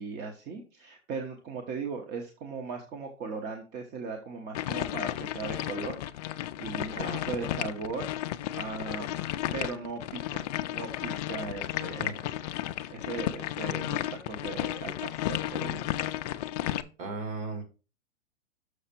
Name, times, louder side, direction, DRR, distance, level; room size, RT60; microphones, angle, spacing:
voice 1, 0.0-6.3 6.6-6.9 7.2-8.2 8.5-9.3 9.5-10.4 10.7-12.3 12.9-15.9, right 4 dB, 25° right, 3 dB, 1.0 m, -38 dB
sound 1, 4.5-16.8, left 13 dB, 35° left, 0.4 m, -33 dB
voice 2, 7.0-7.5 12.0-12.3 17.0-17.6, right 3 dB, 50° right, 5 dB, 2.5 m, -37 dB
6.6 x 5.8 x 4.3 m, 0.32 s
hypercardioid pair, 130°, 37 cm